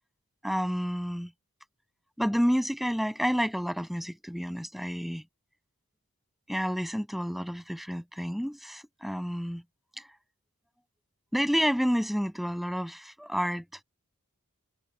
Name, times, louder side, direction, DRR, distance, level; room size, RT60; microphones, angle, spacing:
voice 1, 0.4-1.3 2.2-5.2 6.5-9.6 10.0-10.1 11.3-13.8, equal, ahead, 7.4 m, -29 dB
head